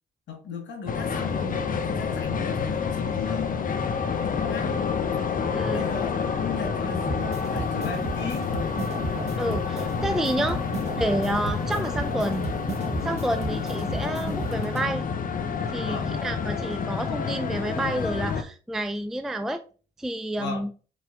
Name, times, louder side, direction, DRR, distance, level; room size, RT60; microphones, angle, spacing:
voice 1, 0.3-3.7 4.3-5.0 5.5-8.5 15.8-16.1 20.4-20.6, left 5 dB, 65° left, 1.5 m, -37 dB
sound 1, 0.9-18.4, left 5 dB, 45° left, 0.7 m, -28 dB
voice 2, 5.5-5.9 9.4-10.6 11.0-12.5 13.0-15.1 15.7-19.6 20.0-20.7, right 1 dB, ahead, 0.4 m, -29 dB
sound 2, 7.1-14.9, right 3 dB, 35° right, 1.1 m, -35 dB
5.0 x 4.3 x 2.4 m
hypercardioid pair, 55°, 20 cm